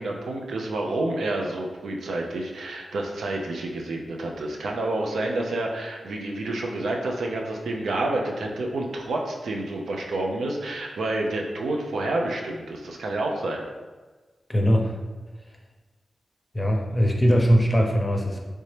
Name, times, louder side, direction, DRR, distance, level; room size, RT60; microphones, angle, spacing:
voice 1, 0.0-13.6, right 2 dB, 85° right, 1 dB, 0.4 m, -29 dB
voice 2, 14.5-14.9 16.5-18.4, equal, 15° left, 0 dB, 0.7 m, -21 dB
3.2 x 2.7 x 3.2 m, 1.3 s
cardioid pair, 50°, 0 cm